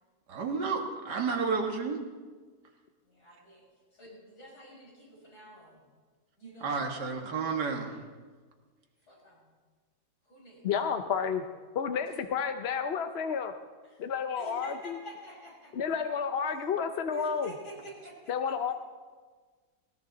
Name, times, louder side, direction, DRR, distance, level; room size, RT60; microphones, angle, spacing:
voice 1, 0.3-2.0 6.6-8.0, right 5 dB, 85° right, 3 dB, 2.2 m, -31 dB
voice 2, 3.0-5.8 6.4-6.9 9.1-9.5 10.2-10.7 12.0-12.2 13.8-14.0 14.4-15.7 17.1-18.6, right 1 dB, 70° left, -5 dB, 6.8 m, -48 dB
voice 3, 10.6-11.4 11.7-13.5 14.0-15.0 15.8-17.5 18.3-18.7, left 6 dB, 55° left, 7 dB, 0.7 m, -31 dB
19.0 x 19.0 x 4.0 m, 1.5 s
omnidirectional pair, 1.7 m